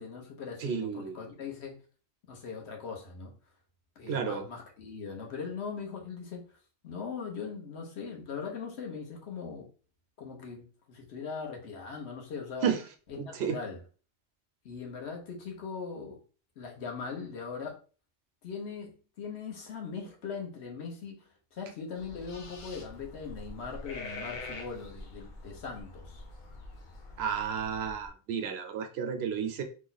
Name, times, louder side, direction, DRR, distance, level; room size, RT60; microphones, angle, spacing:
voice 1, 0.0-1.8 2.3-3.3 4.0-6.5 6.8-9.7 10.2-12.7 13.1-13.8 14.6-16.2 16.6-17.8 18.4-21.2 21.5-26.2, left 5 dB, 70° left, 1.1 m, -40 dB
voice 2, 0.6-1.3 4.1-4.4 12.6-12.8 13.2-13.6 27.2-29.6, right 7 dB, 70° right, 0.8 m, -32 dB
sound 1, 21.9-28.1, left 2 dB, 50° left, 0.7 m, -45 dB
3.0 x 2.2 x 3.9 m
omnidirectional pair, 1.2 m